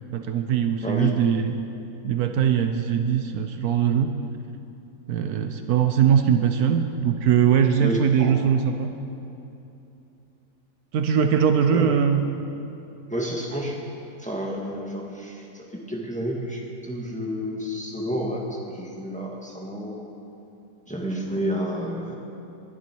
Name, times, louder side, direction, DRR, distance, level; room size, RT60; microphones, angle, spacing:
voice 1, 0.1-1.5 2.0-4.2 5.1-9.0 10.9-12.2, right 8 dB, 70° right, 7 dB, 1.2 m, -21 dB
voice 2, 0.8-1.1 7.8-8.4 11.7-11.9 13.1-13.8 14.2-20.0 20.9-22.2, equal, 5° left, -2 dB, 1.6 m, -30 dB
20.5 x 11.5 x 4.5 m, 2.8 s
omnidirectional pair, 1.7 m